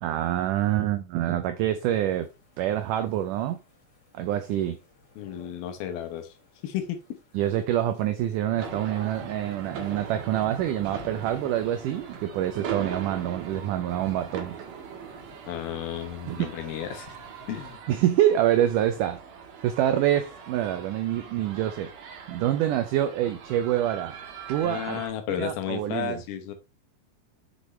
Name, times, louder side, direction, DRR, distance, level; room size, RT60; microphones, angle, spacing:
voice 1, 0.0-2.3 2.6-3.6 4.1-4.8 7.3-14.6 16.3-16.5 17.9-19.2 19.6-21.9 22.3-24.2 24.5-25.0 25.4-26.2, right 12 dB, 85° right, 1.8 m, -26 dB
sound 1, 1.9-17.7, left 3 dB, 40° left, 2.8 m, -50 dB
voice 2, 5.2-6.3 6.6-7.2 15.5-17.1 17.5-17.8 24.6-26.5, left 9 dB, 80° left, 2.9 m, -33 dB
sound 2, 8.6-25.1, right 7 dB, 65° right, 2.9 m, -41 dB
6.9 x 6.3 x 3.2 m
omnidirectional pair, 4.3 m